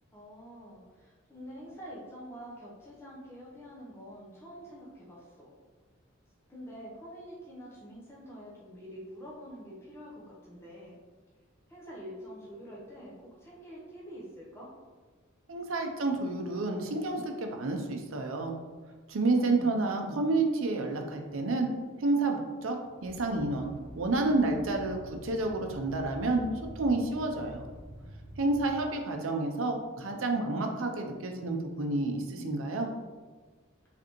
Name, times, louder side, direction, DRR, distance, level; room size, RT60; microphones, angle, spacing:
voice 1, 0.1-5.5 6.5-11.0 11.7-14.7 19.3-19.8, equal, 10° left, -6 dB, 0.8 m, -46 dB
voice 2, 15.5-18.6 19.1-21.7 22.0-22.8 23.0-27.6 28.4-32.9, right 2 dB, 70° right, 3 dB, 0.6 m, -30 dB
sound 1, 23.0-28.7, equal, 30° left, 1.1 m, -47 dB
4.9 x 3.4 x 3.0 m, 1.4 s
head